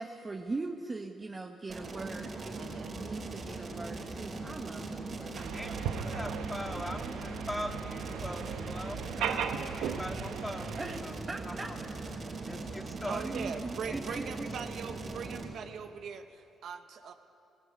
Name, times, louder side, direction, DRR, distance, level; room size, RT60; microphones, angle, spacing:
voice 1, 0.0-7.4 10.7-11.7 13.0-14.5, right 3 dB, 25° right, 3 dB, 1.1 m, -41 dB
sound 1, 1.7-15.4, right 3 dB, 45° right, 5.1 m, -40 dB
voice 2, 2.5-3.0 6.7-7.1 13.0-17.1, right 7 dB, 70° right, 6 dB, 1.2 m, -41 dB
sound 2, 5.3-11.0, right 7 dB, 85° right, 1.2 m, -37 dB
voice 3, 5.5-11.2 11.5-11.8 12.4-13.2 13.9-14.3, equal, 5° left, 3 dB, 2.1 m, -41 dB
19.5 x 16.5 x 9.6 m, 2.6 s
cardioid pair, 90°, 0 cm